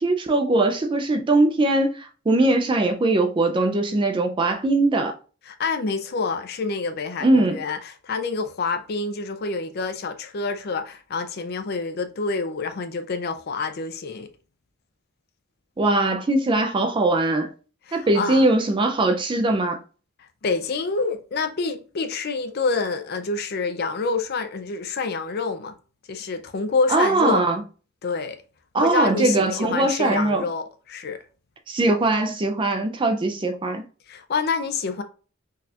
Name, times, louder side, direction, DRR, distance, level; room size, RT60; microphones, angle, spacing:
voice 1, 0.0-5.1 7.2-7.6 15.8-17.5 17.9-19.8 26.9-27.6 28.7-30.5 31.7-33.8, right 2 dB, 25° right, 0.3 m, -21 dB
voice 2, 5.5-14.3 17.9-18.4 20.4-25.7 26.1-27.5 28.0-28.4 28.8-31.2 34.1-35.0, left 4 dB, 50° left, 0.4 m, -27 dB
4.0 x 2.3 x 2.7 m
head